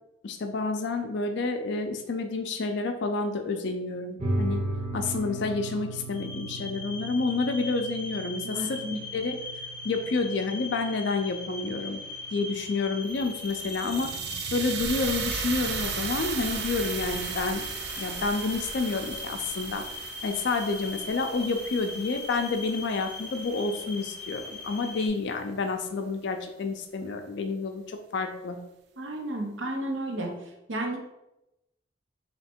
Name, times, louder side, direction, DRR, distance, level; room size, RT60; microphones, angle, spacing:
voice 1, 0.2-4.6 4.9-8.8 9.1-9.4 9.8-12.0 12.3-14.1 14.5-17.6 18.0-28.6, left 3 dB, 65° left, 5 dB, 0.4 m, -29 dB
sound 1, 4.2-13.2, right 2 dB, 35° right, 0.8 m, -37 dB
sound 2, 6.1-25.1, left 3 dB, 5° left, 0.5 m, -40 dB
voice 2, 8.4-9.0 29.0-30.3 30.7-31.0, right 1 dB, 85° right, 1 dB, 0.8 m, -32 dB
sound 3, 13.1-23.2, right 6 dB, 60° right, 0.4 m, -36 dB
3.2 x 2.8 x 4.3 m, 0.90 s
head